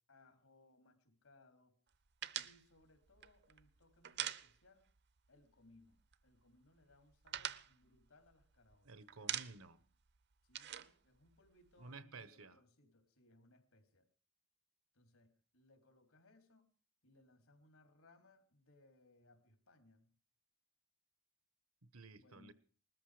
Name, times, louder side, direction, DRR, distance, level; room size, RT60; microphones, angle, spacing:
voice 1, 0.0-1.8 2.4-4.9 5.3-8.9 10.4-14.1 14.9-16.7 17.0-20.2 22.1-22.5, left 2 dB, 80° left, 3.4 m, -68 dB
sound 1, 2.2-5.0 5.3-5.4 5.7-6.4 6.8-8.8 9.1-9.8 10.1-11.9, right 11 dB, 50° right, 0.7 m, -44 dB
voice 2, 8.8-9.9 11.8-12.6 21.8-22.5, right 3 dB, 80° right, 1.2 m, -54 dB
20.0 x 13.5 x 5.0 m
head